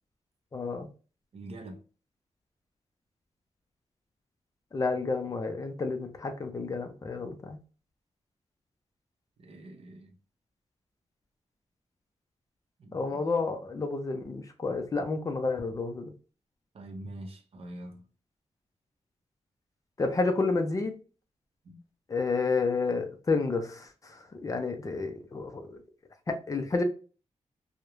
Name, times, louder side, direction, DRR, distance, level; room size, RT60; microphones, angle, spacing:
voice 1, 0.5-0.9 4.7-7.6 12.9-16.0 20.0-20.9 22.1-25.8 26.3-26.8, left 3 dB, 30° left, 0.4 m, -30 dB
voice 2, 1.3-1.8 9.4-10.2 12.8-13.3 16.7-18.0 21.6-21.8, right 1 dB, 55° right, 0.5 m, -44 dB
2.3 x 2.0 x 2.9 m
wide cardioid pair, 180°, 12 cm